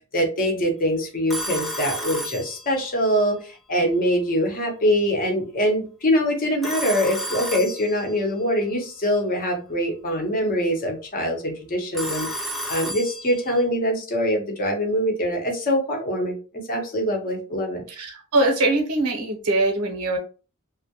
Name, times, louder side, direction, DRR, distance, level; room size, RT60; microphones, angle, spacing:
voice 1, 0.1-17.8, equal, 40° left, 2 dB, 0.7 m, -24 dB
Telephone, 1.3-3.1 6.6-8.3 11.9-13.6, equal, ahead, 0.3 m, -32 dB
voice 2, 18.0-20.2, right 2 dB, 90° right, 3 dB, 0.7 m, -22 dB
2.2 x 2.0 x 2.7 m, 0.35 s
head